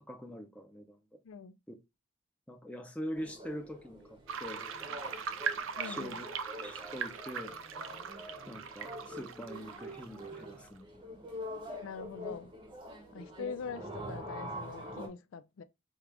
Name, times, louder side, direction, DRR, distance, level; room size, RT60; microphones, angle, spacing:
voice 1, 0.1-1.0 1.7-1.8 2.5-4.6 5.8-6.3 6.6-7.6 8.5-11.1, equal, 5° left, 0.5 m, -43 dB
voice 2, 1.2-1.6 5.8-6.3 11.8-12.5 13.1-15.6, left 6 dB, 85° left, 0.4 m, -43 dB
sound 1, 3.2-15.1, equal, 25° right, 0.8 m, -45 dB
sound 2, 4.3-10.7, right 6 dB, 80° right, 0.5 m, -40 dB
4.6 x 2.4 x 3.3 m
head